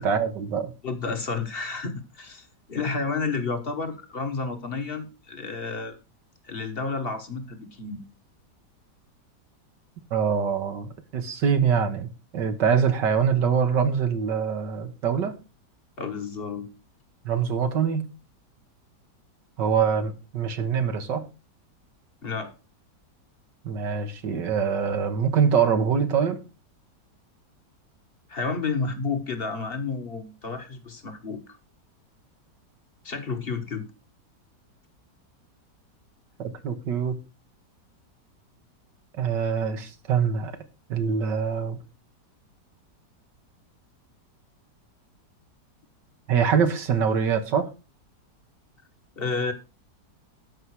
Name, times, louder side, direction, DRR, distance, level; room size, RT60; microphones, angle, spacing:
voice 1, 0.0-0.7 10.1-12.1 12.3-15.3 17.3-18.1 19.6-21.3 23.6-26.4 36.4-37.1 39.2-40.5 40.9-41.8 46.3-47.7, right 7 dB, 80° right, 2.0 m, -24 dB
voice 2, 0.8-6.0 6.4-8.0 16.0-16.7 22.2-22.5 28.3-31.6 33.0-33.9 49.2-49.5, left 4 dB, 35° left, 1.3 m, -31 dB
13.0 x 5.7 x 4.7 m
omnidirectional pair, 1.9 m